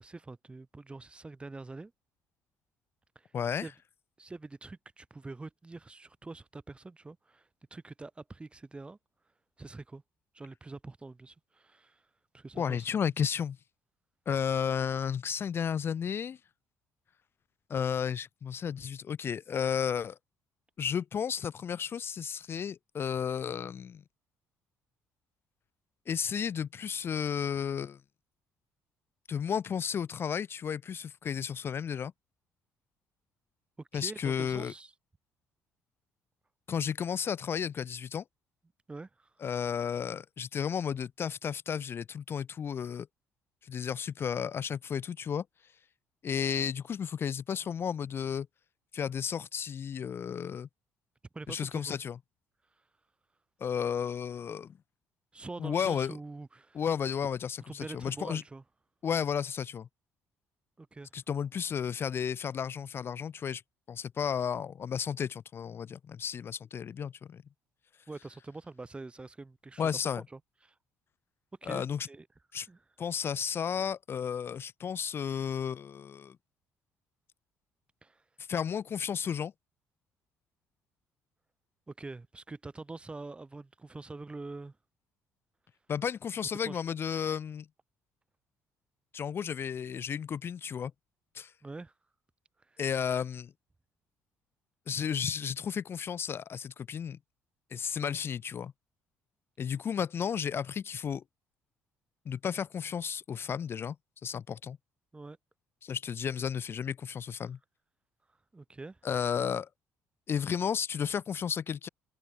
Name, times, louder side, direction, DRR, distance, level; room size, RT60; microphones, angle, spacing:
voice 1, 0.0-1.9 3.1-3.7 4.2-9.0 9.6-10.0 10.3-12.1 12.3-12.9 33.8-34.9 38.9-39.4 51.3-52.0 52.8-52.9 55.3-56.8 57.7-58.6 60.8-61.1 68.1-70.0 70.3-70.8 71.6-72.3 72.7-72.8 78.0-78.2 81.9-84.8 86.6-86.8 91.6-91.9 92.6-92.8 105.1-105.4 108.5-109.0, right 3 dB, 20° right, 1.2 m, -45 dB
voice 2, 3.3-3.7 12.6-13.6 14.3-16.4 17.7-20.2 20.8-24.0 26.1-28.0 29.3-32.1 33.9-34.7 36.7-38.2 39.4-43.1 43.6-45.4 46.2-48.5 48.9-50.7 51.5-52.2 53.6-54.7 55.6-56.1 56.7-58.4 59.0-59.9 61.1-63.6 63.9-67.4 69.8-70.2 71.7-72.1 72.5-72.7 73.0-76.4 78.5-79.5 85.9-87.7 89.1-90.9 91.3-91.5 92.8-93.5 94.9-97.2 97.7-98.7 99.6-101.2 102.3-104.0 104.2-104.8 105.8-107.6 109.0-109.7 110.3-111.9, left 7 dB, 45° left, 0.5 m, -33 dB
supercardioid pair, 85°, 6 cm